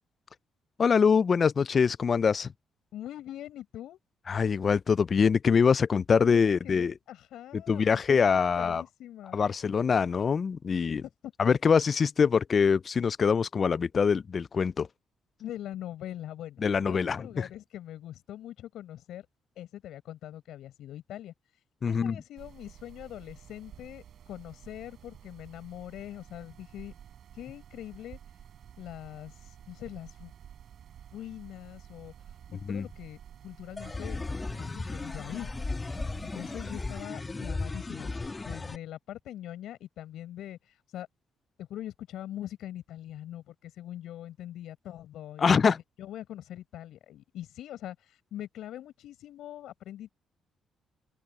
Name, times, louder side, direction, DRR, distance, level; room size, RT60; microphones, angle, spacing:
voice 1, 0.8-2.5 4.3-6.9 7.5-8.8 9.3-11.0 11.4-14.9 16.6-17.5 21.8-22.2 32.7-32.9 45.4-45.8, left 6 dB, 45° left, 0.3 m, -24 dB
voice 2, 2.9-4.0 6.3-8.3 8.6-9.4 11.2-11.3 15.4-19.3 19.6-21.3 21.9-26.9 27.3-28.2 28.8-30.3 31.1-32.1 32.7-33.2 33.4-34.2 34.6-35.5 36.2-38.1 38.4-41.1 41.6-45.7 46.0-50.1, left 12 dB, 80° left, 7.6 m, -42 dB
sound 1, 22.4-37.0, right 9 dB, 65° right, 6.2 m, -51 dB
sound 2, 33.8-38.8, left 3 dB, 25° left, 1.6 m, -36 dB
open air
cardioid pair, 90°, 0 cm